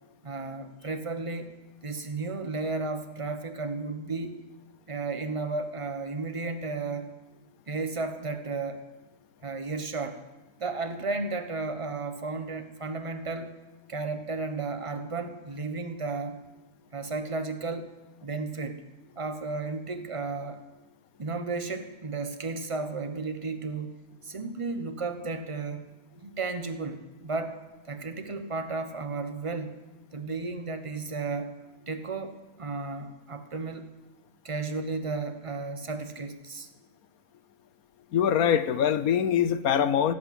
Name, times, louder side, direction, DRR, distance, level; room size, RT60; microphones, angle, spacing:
voice 1, 0.2-1.5 1.8-4.4 4.9-7.1 7.7-8.8 9.4-10.2 10.6-13.5 13.9-16.4 16.9-17.9 18.2-18.8 19.2-20.6 21.2-25.8 26.2-27.6 27.8-29.8 30.1-31.5 31.9-33.9 34.4-36.7, right 3 dB, 25° right, 8 dB, 1.0 m, -33 dB
voice 2, 38.1-40.1, left 8 dB, 70° left, 12 dB, 1.2 m, -23 dB
17.0 x 8.1 x 8.2 m, 1.1 s
omnidirectional pair, 1.7 m